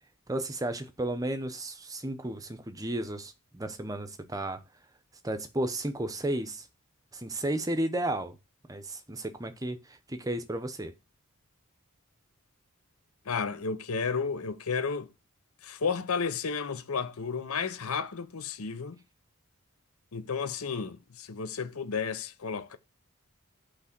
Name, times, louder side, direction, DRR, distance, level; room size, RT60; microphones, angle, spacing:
voice 1, 0.3-4.6 5.2-6.7 7.1-8.4 8.7-10.9, right 1 dB, 15° right, 0.6 m, -33 dB
voice 2, 13.3-15.1 15.6-19.0 20.1-22.8, left 5 dB, 80° left, 0.7 m, -32 dB
6.1 x 3.2 x 5.8 m
head